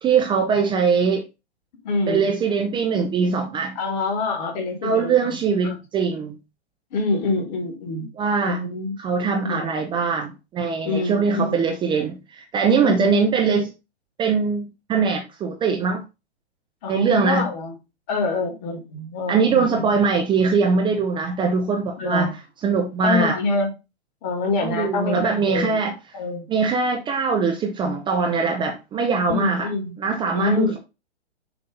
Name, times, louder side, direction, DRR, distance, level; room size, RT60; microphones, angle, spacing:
voice 1, 0.0-1.2 2.1-3.8 4.8-6.4 8.2-8.6 9.0-13.7 14.2-16.0 16.9-17.4 19.3-22.3 22.6-23.4 24.6-25.9 26.5-29.7 30.0-30.8, right 5 dB, 15° right, 0.7 m, -22 dB
voice 2, 1.8-2.3 3.8-5.8 6.9-8.1 8.4-9.0 9.4-9.7 10.8-11.7 12.8-13.3 16.8-17.7 18.1-19.8 22.0-22.3 23.0-23.7 24.2-25.8 26.1-26.5 29.3-30.0 30.3-30.8, left 3 dB, 35° left, 2.0 m, -26 dB
6.9 x 2.8 x 5.2 m
hypercardioid pair, 125°, 33 cm